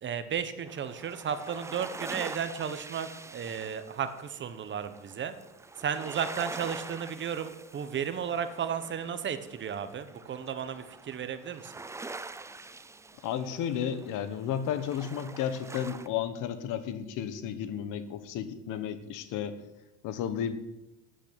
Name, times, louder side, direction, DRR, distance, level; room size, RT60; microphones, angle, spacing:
voice 1, 0.0-5.4 5.8-11.7, right 7 dB, 35° right, 11 dB, 1.2 m, -34 dB
sound 1, 0.7-16.1, right 3 dB, 10° right, 0.5 m, -45 dB
voice 2, 13.2-19.6 20.0-20.6, left 9 dB, 65° left, 12 dB, 1.4 m, -33 dB
12.5 x 9.0 x 8.8 m, 0.97 s
cardioid pair, 145°, 33 cm